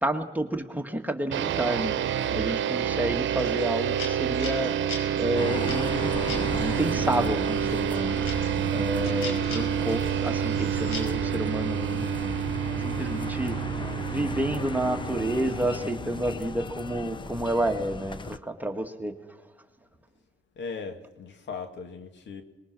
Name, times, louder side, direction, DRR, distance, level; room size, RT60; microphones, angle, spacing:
voice 1, 0.0-1.9 2.3-4.7 5.2-8.2 8.7-12.3 12.8-13.6 14.1-19.1, right 1 dB, 10° right, 4 dB, 1.9 m, -30 dB
sound 1, 1.3-16.1, right 9 dB, 70° right, 1.0 m, -28 dB
voice 2, 2.3-2.6 20.6-22.4, left 5 dB, 65° left, 7 dB, 2.2 m, -38 dB
sound 2, 3.4-6.9 7.4-11.1, left 3 dB, 85° left, 5.5 m, -40 dB
sound 3, 5.4-18.4, left 4 dB, 25° left, 0.7 m, -36 dB
23.0 x 20.5 x 6.1 m, 1.1 s
cardioid pair, 90°, 20 cm